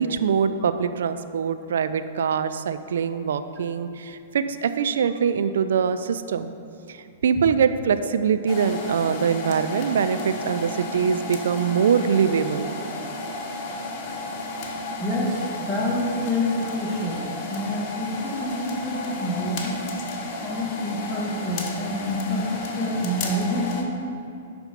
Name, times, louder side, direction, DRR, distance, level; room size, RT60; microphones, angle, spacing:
voice 1, 0.0-6.5 7.2-12.7, right 7 dB, 65° right, 11 dB, 0.4 m, -23 dB
sound 1, 8.5-23.8, left 2 dB, 40° left, 1.1 m, -33 dB
voice 2, 15.0-19.8 20.4-23.9, left 1 dB, 5° right, -6 dB, 2.2 m, -27 dB
11.5 x 4.3 x 5.3 m, 2.5 s
figure-of-eight pair, 105°, 0 cm